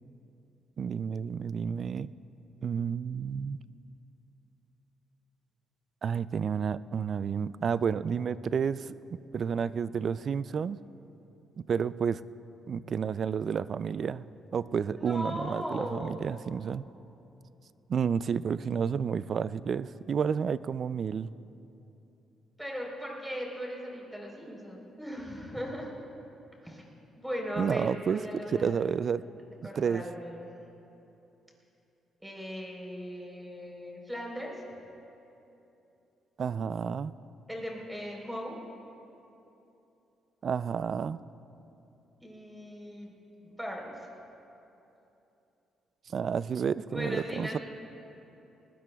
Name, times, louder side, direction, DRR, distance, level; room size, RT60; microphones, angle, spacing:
voice 1, 0.8-2.1 2.6-3.6 6.0-10.8 11.6-12.2 12.7-16.8 17.9-21.3 27.6-28.2 28.5-29.2 29.8-30.0 36.4-37.1 40.4-41.2 46.1-47.6, right 7 dB, 50° right, 16 dB, 0.3 m, -30 dB
voice 2, 14.9-16.2 22.6-25.9 26.6-26.9 27.2-28.8 29.6-30.5 32.2-34.6 37.5-38.6 42.2-43.1 43.4-44.1 46.8-47.6, equal, 5° right, -2 dB, 3.9 m, -38 dB
20.0 x 20.0 x 2.3 m, 2.9 s
cardioid pair, 90°, 0 cm